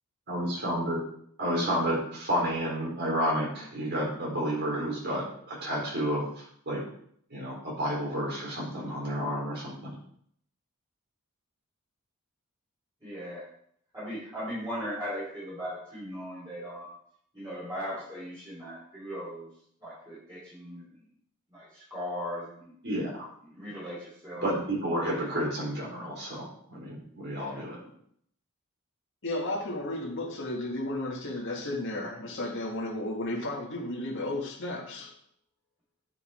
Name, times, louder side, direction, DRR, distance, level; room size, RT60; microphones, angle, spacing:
voice 1, 0.3-1.0 1.4-6.2 6.7-6.8 7.3-9.9 22.8-23.3 24.3-27.8, equal, 50° right, -4 dB, 4.0 m, -30 dB
voice 2, 13.0-13.4 13.9-16.9 17.3-19.5 19.8-20.8 21.5-22.7 23.5-24.5 25.1-25.4 27.3-27.6, equal, 15° right, -9 dB, 3.6 m, -38 dB
voice 3, 29.2-35.1, left 1 dB, 60° left, 0 dB, 1.8 m, -33 dB
9.4 x 5.6 x 4.3 m, 0.66 s
head